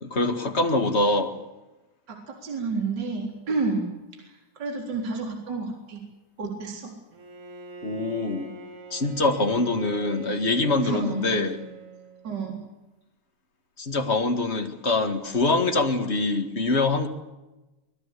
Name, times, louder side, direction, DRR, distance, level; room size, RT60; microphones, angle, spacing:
voice 1, 0.0-1.4 7.8-8.5 8.9-11.6 13.8-17.1, left 2 dB, 25° left, 5 dB, 1.7 m, -24 dB
voice 2, 2.1-3.9 4.2-6.0 6.4-6.9 10.8-11.4 12.2-12.6, right 3 dB, 35° right, 1 dB, 4.4 m, -30 dB
Bowed string instrument, 7.1-12.6, right 4 dB, 70° right, 4.1 m, -44 dB
24.5 x 20.5 x 8.4 m, 1.1 s
omnidirectional pair, 3.5 m